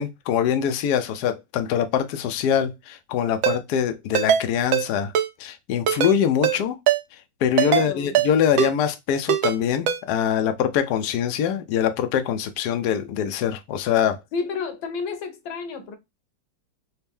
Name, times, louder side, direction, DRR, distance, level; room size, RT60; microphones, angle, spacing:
voice 1, 0.0-5.1 5.4-6.8 7.4-14.2, left 8 dB, 70° left, 1.0 m, -23 dB
Ringtone, 3.4-3.6 4.1-4.4 4.7-4.9 5.1-5.3 5.9-6.1 6.4-6.6 6.9-7.0 7.6-7.9 8.1-8.3 8.6-8.7 9.3-9.6 9.9-10.0, right 10 dB, 85° right, 1.4 m, -20 dB
voice 2, 7.6-8.2 14.3-16.0, left 5 dB, 90° left, 1.6 m, -31 dB
4.3 x 2.1 x 3.4 m
omnidirectional pair, 2.1 m